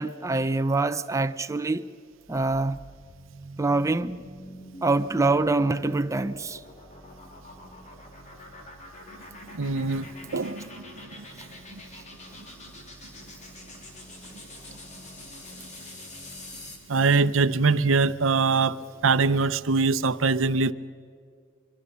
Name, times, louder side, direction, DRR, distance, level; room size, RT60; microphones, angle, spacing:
voice 1, 0.0-1.9 2.3-2.8 3.6-4.3 4.8-6.6, right 3 dB, 15° right, 0.5 m, -25 dB
sound 1, 2.1-16.9, left 1 dB, 40° left, 3.5 m, -45 dB
voice 2, 9.5-10.9 11.7-11.8 16.9-20.7, right 4 dB, 80° right, 0.7 m, -23 dB
24.5 x 23.5 x 6.9 m
head